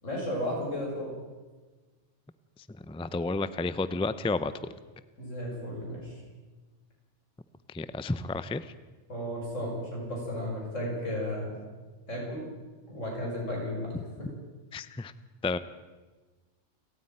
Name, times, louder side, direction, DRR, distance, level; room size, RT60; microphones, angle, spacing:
voice 1, 0.0-1.1 5.2-6.2 9.1-11.6 12.1-12.4 12.9-14.3, left 1 dB, 85° left, -2 dB, 7.1 m, -34 dB
voice 2, 2.9-4.5 7.7-8.6 14.7-15.1 15.4-15.6, left 3 dB, 5° left, 14 dB, 0.4 m, -31 dB
29.0 x 9.8 x 9.1 m, 1.3 s
omnidirectional pair, 1.3 m